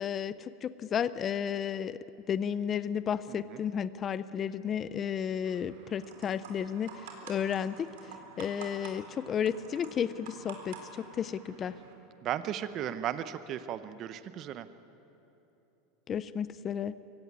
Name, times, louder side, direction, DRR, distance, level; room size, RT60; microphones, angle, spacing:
voice 1, 0.0-2.0 2.3-11.8 16.1-17.0, left 8 dB, 25° left, 15 dB, 0.5 m, -33 dB
voice 2, 3.3-3.6 12.2-14.7, right 10 dB, 35° right, 12 dB, 0.7 m, -36 dB
sound 1, 5.4-11.9, right 5 dB, 80° right, 3.9 m, -49 dB
24.0 x 16.5 x 9.5 m, 3.0 s
supercardioid pair, 165°, 0 cm